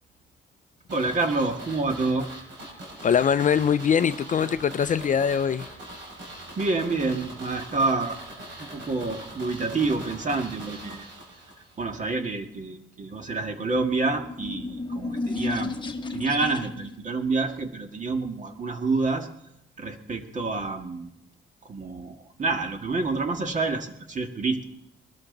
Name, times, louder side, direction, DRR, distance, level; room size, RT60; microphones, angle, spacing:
voice 1, 0.9-2.3 6.6-8.2 8.6-11.1 11.8-15.8 16.1-19.3 19.8-21.1 21.6-24.6, right 3 dB, 40° right, 6 dB, 1.9 m, -28 dB
sound 1, 0.9-11.8 12.1-12.2, right 1 dB, 70° right, 5.7 m, -42 dB
voice 2, 3.0-5.7, left 7 dB, 40° left, 13 dB, 0.5 m, -22 dB
sound 2, 14.1-17.0, left 2 dB, 25° left, 1.1 m, -32 dB
20.5 x 12.5 x 3.9 m, 0.80 s
cardioid pair, 90°, 20 cm